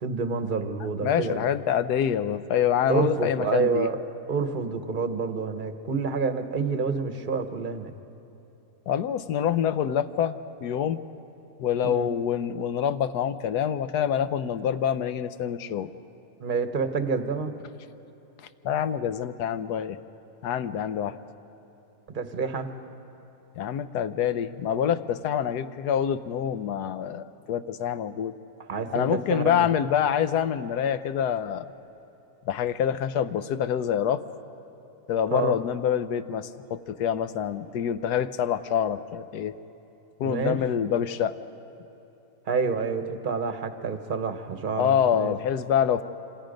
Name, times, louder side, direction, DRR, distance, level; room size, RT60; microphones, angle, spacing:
voice 1, 0.0-1.5 2.9-4.0 4.3-7.9 11.8-12.1 16.4-17.5 22.1-22.7 28.7-29.7 35.3-35.5 40.2-40.6 42.5-45.3, right 5 dB, 35° right, 8 dB, 1.0 m, -28 dB
voice 2, 1.0-3.9 8.9-10.4 10.6-11.0 11.6-15.9 18.6-20.0 20.4-21.2 23.6-28.4 28.9-31.7 32.5-34.2 35.1-39.5 40.2-41.3 44.8-46.0, left 9 dB, 75° left, 12 dB, 1.2 m, -26 dB
27.0 x 26.5 x 5.2 m, 2.9 s
omnidirectional pair, 1.8 m